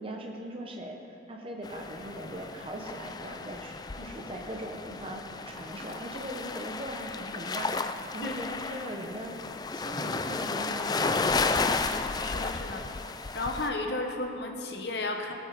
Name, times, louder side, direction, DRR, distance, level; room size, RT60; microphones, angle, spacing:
voice 1, 0.0-7.7 8.1-9.4 9.7-11.4, right 1 dB, 30° right, 1 dB, 0.8 m, -40 dB
sound 1, 1.6-13.7, left 4 dB, 20° left, 0.3 m, -33 dB
voice 2, 12.0-12.8 13.3-15.3, left 2 dB, 60° left, 3 dB, 1.1 m, -34 dB
17.0 x 9.0 x 4.1 m, 2.6 s
head